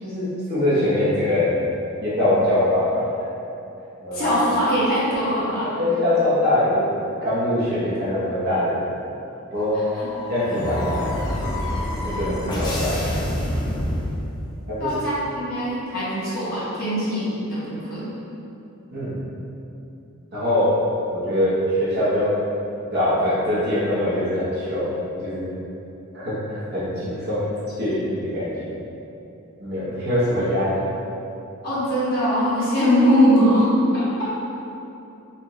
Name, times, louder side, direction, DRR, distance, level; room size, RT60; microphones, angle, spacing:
voice 1, 0.0-1.5 2.0-3.0 4.0-4.3 5.8-6.9 7.2-8.9 9.5-9.8 10.3-11.5 12.0-13.1 14.7-14.9 18.9-19.2 20.3-20.7 21.1-22.4 22.9-24.9 25.2-25.5 26.1-27.5 27.8-28.7 29.6-30.9, left 1 dB, 45° right, -10 dB, 1.1 m, -23 dB
voice 2, 4.1-5.7 14.8-18.1 31.6-34.0, equal, 45° left, -10 dB, 1.2 m, -21 dB
sound 1, 9.6-14.6, left 1 dB, 20° left, 0.4 m, -27 dB
4.3 x 2.5 x 3.1 m, 2.8 s
head